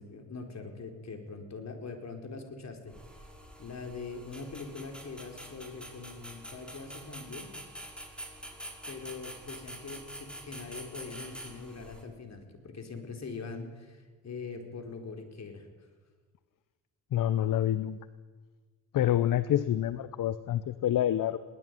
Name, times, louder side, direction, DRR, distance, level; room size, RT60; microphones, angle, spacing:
voice 1, 0.0-3.0 3.6-7.5 8.9-15.7, left 4 dB, 50° left, 5 dB, 4.4 m, -42 dB
sound 1, 2.9-12.0, right 1 dB, 5° left, 5.8 m, -46 dB
voice 2, 17.1-18.0 18.9-21.4, left 11 dB, 70° left, 15 dB, 0.9 m, -27 dB
21.0 x 18.5 x 9.3 m, 1.4 s
cardioid pair, 65°, 33 cm